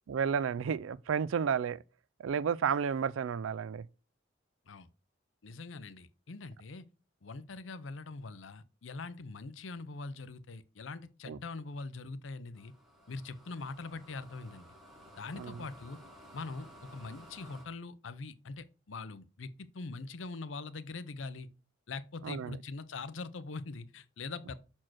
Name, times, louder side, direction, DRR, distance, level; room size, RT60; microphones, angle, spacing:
voice 1, 0.1-1.8 2.2-3.8 11.3-11.4 15.4-15.6 22.2-22.6, right 7 dB, 90° right, 0.4 m, -32 dB
voice 2, 5.4-6.8 7.2-12.7 13.1-14.7 15.2-16.0 16.3-21.5 21.9-24.5, left 3 dB, 80° left, 0.7 m, -43 dB
sound 1, 12.5-17.6, equal, ahead, 1.8 m, -55 dB
5.9 x 4.4 x 6.3 m
head